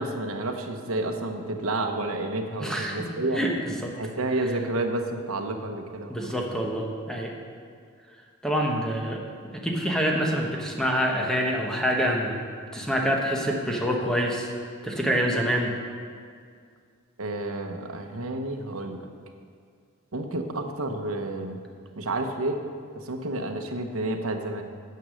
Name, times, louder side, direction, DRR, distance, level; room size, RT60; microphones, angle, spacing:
voice 1, 0.0-3.4 4.0-6.4 17.2-19.1 20.1-21.6 22.0-22.6 22.9-24.6, right 2 dB, 70° right, 4 dB, 0.9 m, -30 dB
voice 2, 2.6-3.1 3.3-3.9 6.1-7.3 8.4-9.2 9.5-12.4 12.7-14.5 14.8-15.7, equal, 5° left, 0 dB, 1.1 m, -26 dB
9.4 x 6.9 x 6.3 m, 2.1 s
head